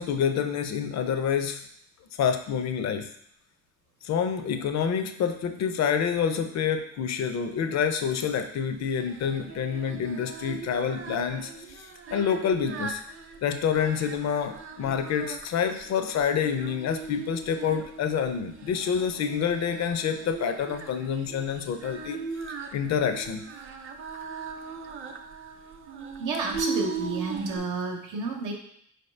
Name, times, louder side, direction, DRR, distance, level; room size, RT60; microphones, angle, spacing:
voice 1, 0.0-1.7 2.2-3.1 4.0-13.0 13.4-22.2 22.7-23.4, left 7 dB, 60° left, 8 dB, 0.5 m, -27 dB
Singing, 8.8-27.6, right 4 dB, 45° right, 0.5 m, -39 dB
voice 2, 26.2-28.5, right 3 dB, 90° right, 1 dB, 0.8 m, -30 dB
4.3 x 2.9 x 3.2 m, 0.69 s
cardioid pair, 90°, 30 cm